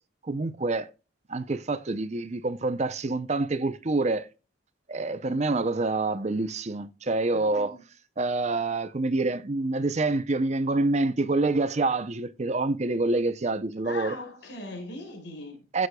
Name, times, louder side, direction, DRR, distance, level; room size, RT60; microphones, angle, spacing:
voice 1, 0.2-0.9 1.3-4.3 4.9-7.7 8.2-14.2 15.7-15.9, right 2 dB, 35° right, 0.5 m, -27 dB
voice 2, 7.3-7.8 13.8-15.6, left 2 dB, 60° left, 5.1 m, -40 dB
16.5 x 6.4 x 2.2 m
head